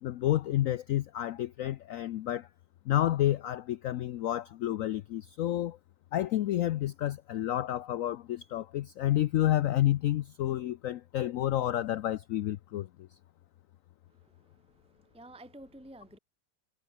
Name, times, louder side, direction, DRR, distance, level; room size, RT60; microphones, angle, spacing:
voice 1, 0.0-2.5 2.9-5.8 6.1-13.1, left 13 dB, 75° left, 0.8 m, -30 dB
voice 2, 14.1-16.2, right 1 dB, 5° right, 1.5 m, -52 dB
omnidirectional pair, 1.9 m